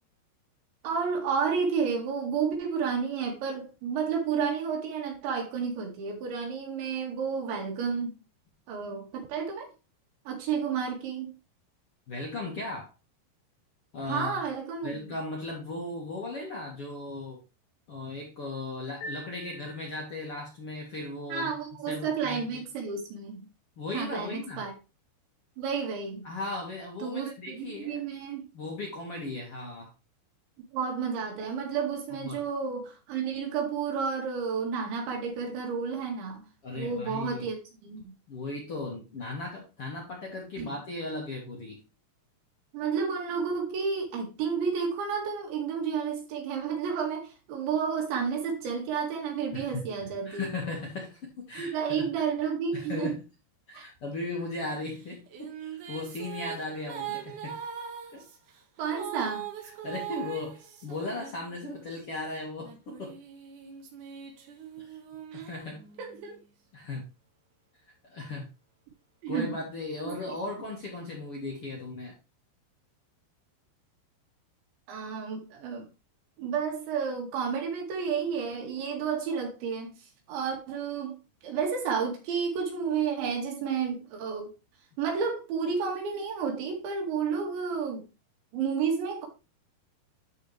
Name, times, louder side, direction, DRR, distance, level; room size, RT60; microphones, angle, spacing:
voice 1, 0.8-8.1 8.7-9.7 10.3-11.3 14.1-15.1 21.3-23.4 23.9-24.7 25.6-26.3 27.0-28.5 30.7-36.4 36.8-37.6 37.8-38.1 40.6-40.7 42.7-50.5 51.6-53.2 53.7-53.8 58.8-59.5 65.3-65.5 66.0-66.4 69.2-69.5 70.1-70.2 74.9-75.9 76.4-79.9 80.3-81.2 81.4-84.5 85.0-88.0 88.5-89.3, right 6 dB, 85° right, 4.5 m, -31 dB
voice 2, 12.1-12.9 13.9-14.4 14.8-17.4 17.9-21.5 21.9-22.6 23.8-24.6 26.2-28.0 28.5-29.9 32.2-32.4 36.6-37.4 38.3-41.8 49.5-49.8 50.2-52.2 52.7-53.2 53.7-57.6 58.1-58.2 59.6-63.2 64.8-65.0 65.3-65.8 66.7-67.1 68.0-68.4 69.3-72.2, left 2 dB, 45° left, 2.0 m, -37 dB
sound 1, 19.0-20.5, equal, 70° left, 3.9 m, -44 dB
sound 2, 55.0-62.0 62.6-66.4, right 9 dB, 60° right, 2.3 m, -41 dB
12.5 x 4.4 x 3.3 m
omnidirectional pair, 5.1 m